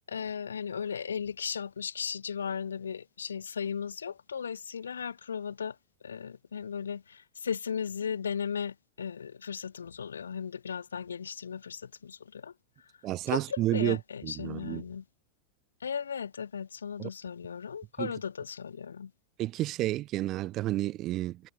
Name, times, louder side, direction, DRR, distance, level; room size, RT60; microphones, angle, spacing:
voice 1, 0.1-5.8 6.0-12.5 13.3-15.0 15.8-19.1, left 7 dB, 70° left, 0.9 m, -36 dB
voice 2, 13.0-14.0 14.2-14.8 17.0-17.1 18.0-18.1 19.4-21.5, right 16 dB, 35° right, 0.6 m, -30 dB
figure-of-eight pair, 90°, 0 cm